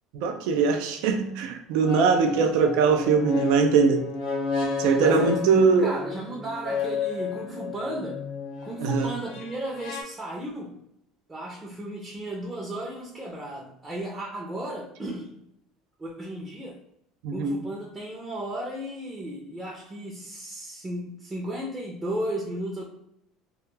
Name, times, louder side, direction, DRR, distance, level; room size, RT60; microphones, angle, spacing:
voice 1, 0.1-4.1 4.8-5.9 8.8-9.1 17.2-17.6, right 5 dB, 75° right, 5 dB, 0.3 m, -21 dB
sound 1, 0.5-0.7 1.8-10.0, left 5 dB, 75° left, 0.7 m, -33 dB
voice 2, 5.0-8.2 8.6-10.7 11.3-15.3 16.0-16.8 17.3-22.9, right 1 dB, 20° right, -3 dB, 0.5 m, -34 dB
2.3 x 2.2 x 3.1 m, 0.78 s
supercardioid pair, 105°, 0 cm